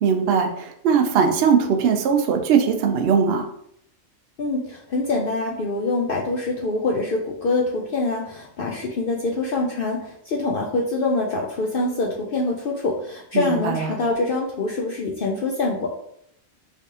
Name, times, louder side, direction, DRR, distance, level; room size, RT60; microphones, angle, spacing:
voice 1, 0.0-3.5 13.3-13.9, right 6 dB, 65° right, 4 dB, 0.6 m, -20 dB
voice 2, 4.4-15.9, left 2 dB, 75° left, -1 dB, 0.5 m, -25 dB
3.3 x 3.3 x 2.8 m, 0.70 s
omnidirectional pair, 1.5 m